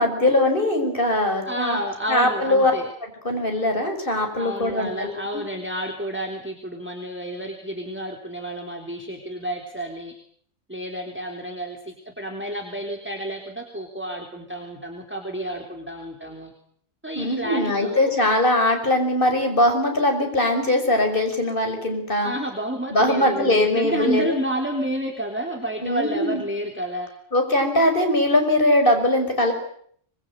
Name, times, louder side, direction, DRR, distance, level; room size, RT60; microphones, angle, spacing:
voice 1, 0.0-1.8 2.1-2.7 3.2-5.4 17.2-22.3 22.9-24.4 25.8-26.4 27.3-29.5, left 1 dB, 45° left, 4 dB, 6.0 m, -21 dB
voice 2, 1.4-2.9 4.3-10.1 10.7-16.5 17.0-18.1 22.2-27.1, right 1 dB, 10° right, 2 dB, 3.4 m, -30 dB
25.5 x 22.5 x 9.1 m, 0.63 s
omnidirectional pair, 1.3 m